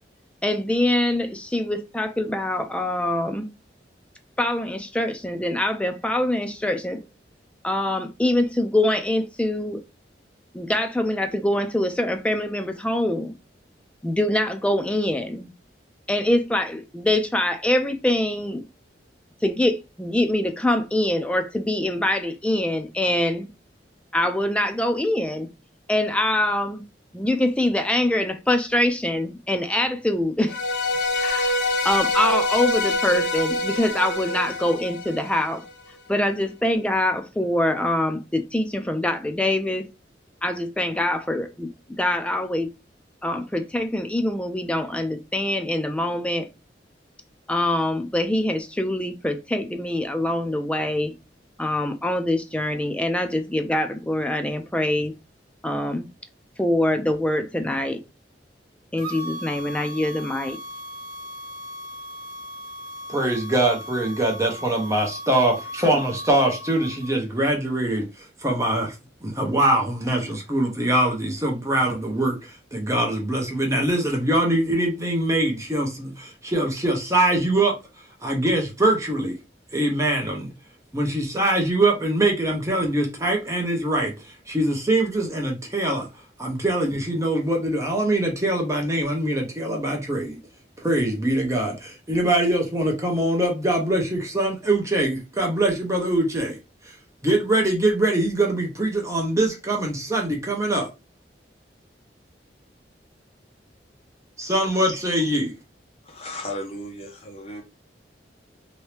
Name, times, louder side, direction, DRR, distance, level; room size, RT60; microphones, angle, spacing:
voice 1, 0.4-3.5 4.4-7.0 7.6-9.8 10.5-13.3 14.0-15.5 16.1-18.6 19.4-23.5 24.1-25.5 25.9-26.8 27.1-30.6 31.2-35.6 36.1-39.9 40.4-42.7 43.2-46.5 47.5-51.2 51.6-55.1 55.6-56.1 56.6-58.0 58.9-60.6, left 1 dB, 5° left, 0.4 m, -24 dB
sound 1, 30.5-35.7, left 2 dB, 75° left, 1.1 m, -25 dB
sound 2, 59.0-67.1, equal, 55° right, 0.9 m, -37 dB
voice 2, 63.1-68.9 69.2-77.8 78.2-79.4 79.7-80.5 80.9-86.1 86.4-90.4 90.8-96.6 96.9-97.0 97.2-100.9 104.4-105.5, right 1 dB, 15° right, 0.8 m, -23 dB
voice 3, 106.0-107.6, left 1 dB, 35° left, 0.9 m, -35 dB
2.9 x 2.7 x 3.2 m
head